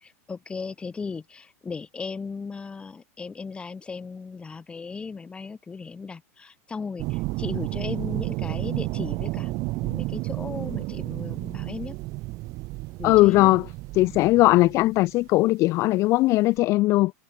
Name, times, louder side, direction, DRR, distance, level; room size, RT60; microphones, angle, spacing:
voice 1, 0.0-12.0 13.0-13.5, left 5 dB, 10° left, 1.7 m, -36 dB
sound 1, 7.0-15.2 16.6-16.7, right 22 dB, 40° right, 3.0 m, -31 dB
voice 2, 13.0-13.7 13.9-17.1, left 19 dB, 35° left, 0.5 m, -19 dB
supercardioid pair, 145°, 9 cm